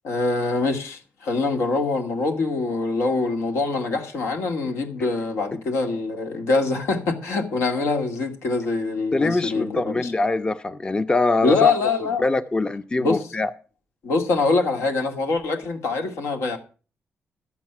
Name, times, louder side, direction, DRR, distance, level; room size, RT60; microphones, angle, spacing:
voice 1, 0.0-10.1 11.4-12.3 13.0-13.2 14.0-16.6, left 3 dB, 90° left, 2.2 m, -24 dB
voice 2, 9.1-11.8 12.2-13.5, left 3 dB, 20° left, 0.6 m, -23 dB
12.0 x 8.4 x 5.9 m
cardioid pair, 120°, 5 cm